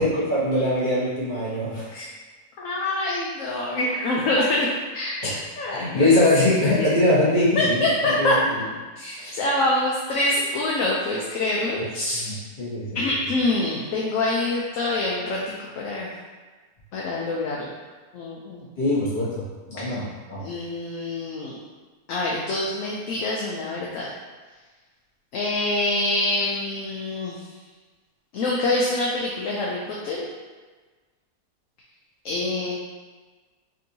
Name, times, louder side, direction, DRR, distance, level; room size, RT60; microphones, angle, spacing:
voice 1, 0.0-1.9 5.2-5.4 5.7-8.6 9.2-9.3 12.1-13.0 18.8-19.3 19.7-20.4, left 1 dB, 35° left, -9 dB, 1.3 m, -22 dB
voice 2, 2.6-4.7 4.9-5.2 5.6-6.2 6.8-6.9 7.5-8.4 9.0-12.4 12.9-16.1 16.9-17.7 18.1-18.7 19.8-20.0 20.4-21.6 22.1-24.0 25.3-27.4 28.3-30.2 32.2-32.7, left 2 dB, 70° left, -3 dB, 0.9 m, -25 dB
5.3 x 2.6 x 2.7 m, 1.4 s
omnidirectional pair, 1.6 m